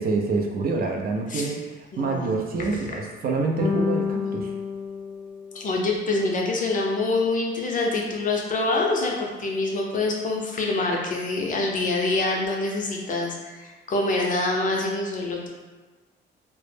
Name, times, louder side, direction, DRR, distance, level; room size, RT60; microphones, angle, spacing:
voice 1, 0.0-1.6 2.0-4.5, right 3 dB, 50° right, 1 dB, 0.4 m, -26 dB
voice 2, 1.9-2.3 5.5-15.5, left 2 dB, 40° left, -1 dB, 0.5 m, -25 dB
sound 1, 3.6-6.1, left 5 dB, 20° right, 0.8 m, -29 dB
2.1 x 2.0 x 3.1 m, 1.3 s
cardioid pair, 90°, 20 cm